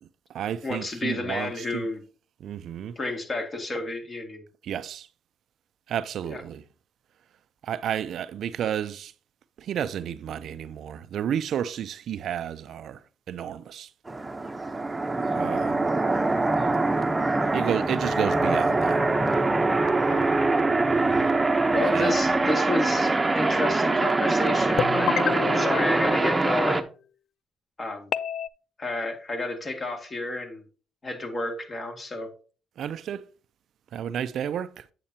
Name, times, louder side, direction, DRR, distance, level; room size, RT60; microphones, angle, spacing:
voice 1, 0.0-1.9 2.4-2.9 4.6-5.1 5.9-6.6 7.6-9.1 9.6-13.9 15.1-15.9 17.5-19.0 21.1-21.3 21.9-22.2 32.8-33.3 33.9-34.9, right 9 dB, 70° right, 0.4 m, -32 dB
voice 2, 0.6-2.0 3.0-4.4 6.3-6.4 20.1-20.3 21.7-26.9 27.8-28.1 28.8-30.6 31.0-32.3, left 2 dB, 35° left, 2.2 m, -31 dB
sound 1, 14.1-26.8, right 2 dB, 20° right, 0.8 m, -23 dB
sound 2, 24.8-26.9 28.1-28.5, left 10 dB, 70° left, 0.3 m, -30 dB
8.7 x 7.6 x 2.8 m
cardioid pair, 90°, 0 cm